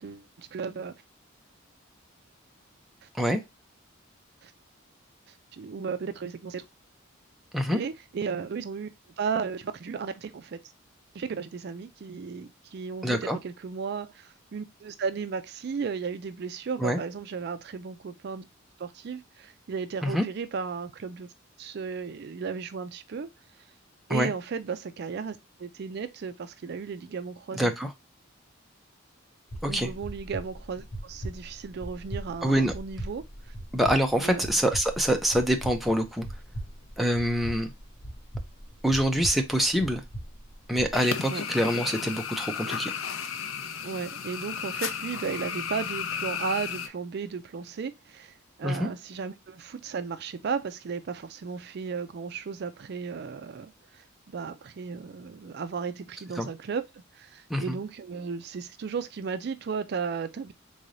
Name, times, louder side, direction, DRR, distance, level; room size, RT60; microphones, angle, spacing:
voice 1, 0.0-0.9 3.0-3.1 4.4-4.5 5.3-6.7 7.7-8.9 9.2-10.6 11.1-18.5 18.8-21.3 21.6-23.3 24.1-27.7 29.7-33.5 34.2-34.6 41.3-41.4 43.8-60.5, right 5 dB, 50° right, 0.4 m, -35 dB
voice 2, 13.0-13.4 16.8-17.0 20.0-20.2 24.1-24.3 27.5-27.9 29.6-29.9 32.4-32.7 33.7-36.3 37.0-37.7 38.8-40.0 40.7-42.9 48.6-48.9 56.4-56.5 57.5-57.8, equal, ahead, 0.5 m, -25 dB
sound 1, 29.5-40.9, right 1 dB, 35° left, 0.9 m, -39 dB
sound 2, 40.9-46.9, left 7 dB, 80° left, 0.6 m, -34 dB
3.8 x 3.2 x 2.5 m
head